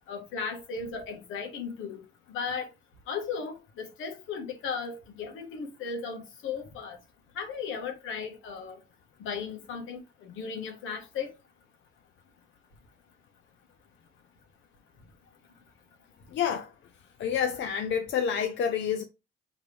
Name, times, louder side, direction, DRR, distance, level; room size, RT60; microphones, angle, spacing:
voice 1, 0.1-2.0 2.3-2.7 3.1-7.0 7.4-8.8 9.2-11.3, left 5 dB, 85° left, 1.2 m, -36 dB
voice 2, 16.3-16.7 17.2-19.0, left 8 dB, 65° left, 0.6 m, -28 dB
5.1 x 3.1 x 3.2 m
cardioid pair, 90°, 20 cm